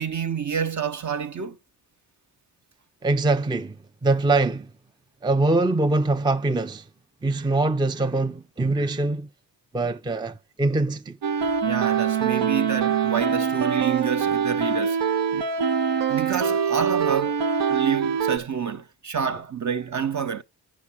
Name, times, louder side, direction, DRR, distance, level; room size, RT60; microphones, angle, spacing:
voice 1, 0.0-1.6 11.6-15.0 15.3-15.5 16.1-17.4 17.7-20.4, right 7 dB, 45° right, 1.0 m, -28 dB
voice 2, 3.0-4.7 5.2-6.8 7.2-9.3 9.7-11.2, right 2 dB, 10° right, 0.5 m, -23 dB
sound 1, 11.2-18.4, right 7 dB, 85° right, 1.0 m, -24 dB
7.2 x 5.9 x 6.2 m
cardioid pair, 60°, 41 cm